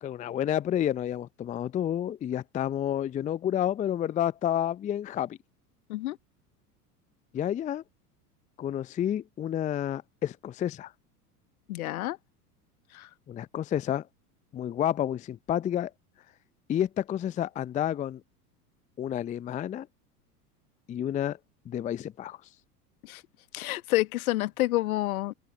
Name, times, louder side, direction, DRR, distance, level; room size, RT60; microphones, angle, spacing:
voice 1, 0.0-5.4 7.3-7.8 8.6-10.9 13.3-14.0 14.5-15.9 16.7-18.2 19.0-19.9 20.9-21.4 21.7-22.4, left 10 dB, 15° left, 0.5 m, -30 dB
voice 2, 11.7-12.2 12.9-13.1 23.0-23.2 23.5-25.3, left 17 dB, 60° left, 1.2 m, -28 dB
open air
figure-of-eight pair, 80°, 48 cm